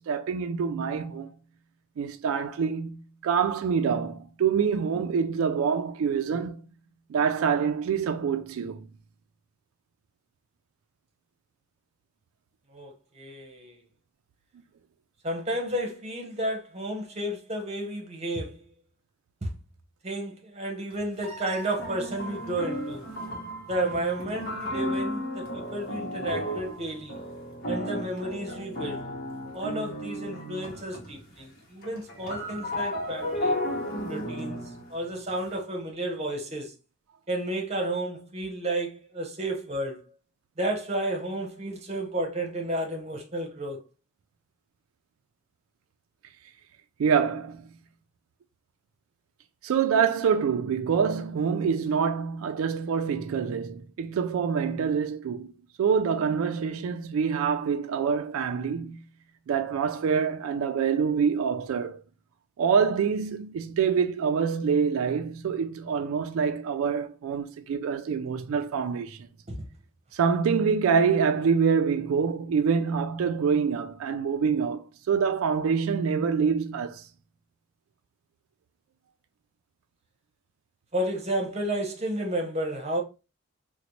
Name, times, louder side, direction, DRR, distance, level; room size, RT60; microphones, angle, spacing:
voice 1, 0.1-1.3 2.0-6.6 7.1-8.8 47.0-47.7 49.6-55.5 55.8-59.0 59.5-62.0 62.6-69.2 70.1-77.0, right 6 dB, 85° right, 0.3 m, -26 dB
voice 2, 12.7-13.7 15.2-18.6 19.4-19.5 20.0-23.1 23.7-27.2 27.7-29.0 29.5-33.6 34.1-34.6 34.9-36.7 37.3-40.0 40.6-43.8 69.5-69.6 80.9-83.0, right 1 dB, 30° right, 0.8 m, -32 dB
sound 1, 20.9-21.0 21.8-31.3 31.6-35.5, left 1 dB, 50° left, 1.0 m, -34 dB
3.9 x 2.1 x 2.9 m
head